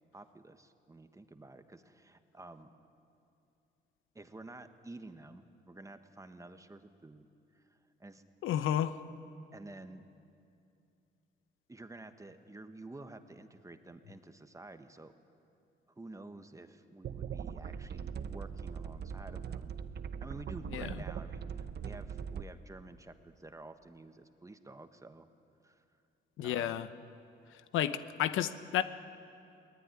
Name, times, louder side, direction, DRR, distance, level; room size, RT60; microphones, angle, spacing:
voice 1, 0.1-2.7 4.1-7.3 7.5-8.2 9.5-10.0 11.7-15.1 16.0-19.7 20.2-25.3 25.6-25.8 26.4-26.8, right 2 dB, 15° right, 8 dB, 1.4 m, -50 dB
voice 2, 8.4-9.0 20.7-21.0 26.4-26.9 27.5-28.8, left 11 dB, 85° left, 12 dB, 0.9 m, -32 dB
sound 1, 17.0-22.4, right 7 dB, 55° right, 0.9 m, -41 dB
22.5 x 19.0 x 9.7 m, 2.6 s
cardioid pair, 90°, 20 cm